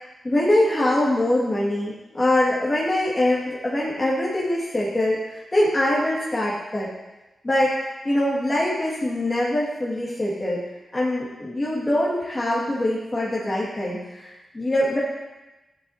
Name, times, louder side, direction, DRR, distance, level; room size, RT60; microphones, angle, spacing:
voice 1, 0.2-6.9 7.4-7.8 8.0-10.6 10.9-15.0, left 1 dB, 30° left, -7 dB, 2.1 m, -23 dB
12.0 x 7.8 x 2.8 m, 1.1 s
supercardioid pair, 45°, 0 cm